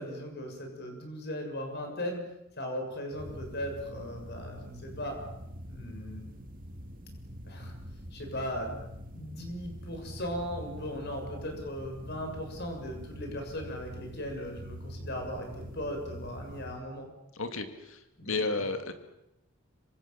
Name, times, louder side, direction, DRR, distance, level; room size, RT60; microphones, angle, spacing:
voice 1, 0.0-2.2 2.6-5.1 5.7-6.2 7.5-7.7 8.1-8.8 9.1-15.5 15.7-17.1 18.2-18.6, equal, 50° left, 4 dB, 7.1 m, -38 dB
sound 1, 3.1-16.8, equal, 40° right, 2.5 m, -44 dB
voice 2, 17.4-18.0 18.3-18.9, left 3 dB, 65° left, 8 dB, 2.4 m, -32 dB
26.0 x 25.0 x 7.3 m, 0.87 s
head